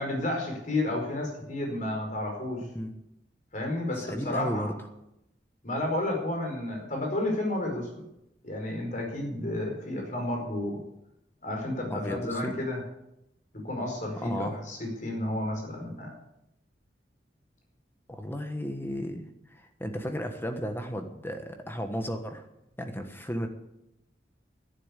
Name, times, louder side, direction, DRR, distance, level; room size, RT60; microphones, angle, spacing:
voice 1, 0.0-2.7 3.5-4.7 5.6-8.1 8.4-10.8 11.4-12.8 13.6-16.1, left 1 dB, 45° left, 1 dB, 4.8 m, -31 dB
voice 2, 2.6-2.9 4.0-4.7 11.9-12.6 14.2-14.6 18.1-22.5 22.8-23.5, equal, 15° left, 6 dB, 1.3 m, -34 dB
11.0 x 10.5 x 8.4 m, 0.84 s
head